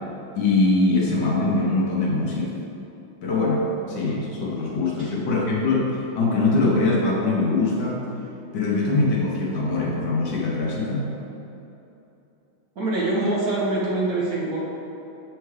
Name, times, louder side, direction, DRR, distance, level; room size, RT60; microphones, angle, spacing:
voice 1, 0.3-2.6 3.2-8.0 8.5-11.1, left 2 dB, 65° left, -3 dB, 1.3 m, -22 dB
voice 2, 12.8-14.6, right 2 dB, 55° right, -5 dB, 1.1 m, -25 dB
7.6 x 4.6 x 3.2 m, 3.0 s
omnidirectional pair, 2.2 m